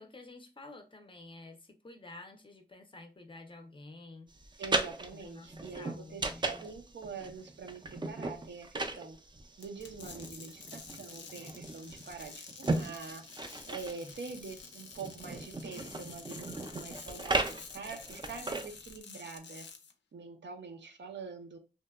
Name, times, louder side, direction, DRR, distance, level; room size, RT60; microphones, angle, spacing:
voice 1, 0.0-4.3 5.1-6.7 11.8-12.1 14.0-14.1, left 2 dB, 30° left, 0.5 m, -51 dB
sound 1, 4.4-19.0, right 2 dB, 25° right, 0.3 m, -37 dB
voice 2, 4.6-9.2 9.6-13.2 13.6-19.7 20.1-21.6, right 4 dB, 85° right, 0.5 m, -45 dB
sound 2, 9.6-19.9, left 5 dB, 90° left, 0.4 m, -50 dB
2.8 x 2.1 x 2.2 m
wide cardioid pair, 95°, 18 cm